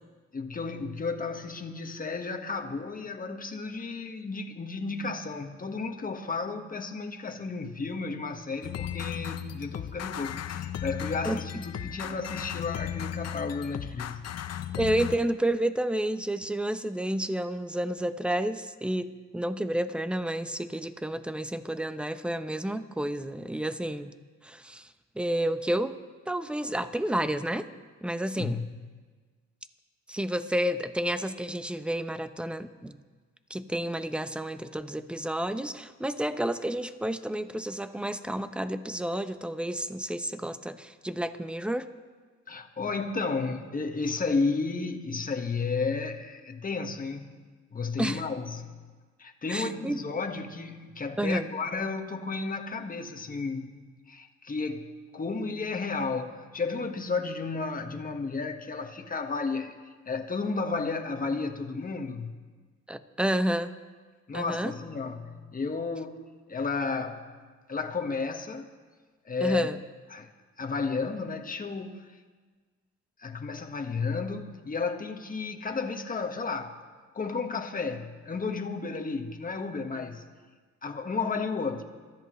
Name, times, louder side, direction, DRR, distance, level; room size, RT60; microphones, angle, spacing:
voice 1, 0.3-14.3 28.4-28.7 42.5-47.4 47.7-48.8 49.2-59.7 60.0-62.3 64.3-67.3 67.7-68.7 69.2-69.7 70.1-70.3 70.6-72.0 73.2-76.8 77.1-80.2 80.8-81.8, left 4 dB, 30° left, 4 dB, 1.5 m, -33 dB
sound 1, 8.6-15.2, left 10 dB, 55° left, 0.8 m, -36 dB
voice 2, 11.2-11.6 14.8-24.1 24.4-25.9 26.3-27.7 28.0-28.7 30.1-33.0 33.5-41.9 48.0-48.2 49.5-50.0 51.2-51.5 62.9-63.7 64.3-64.7 69.4-69.8, right 1 dB, 5° right, 11 dB, 0.7 m, -30 dB
25.0 x 13.5 x 3.2 m, 1.4 s
cardioid pair, 90°, 30 cm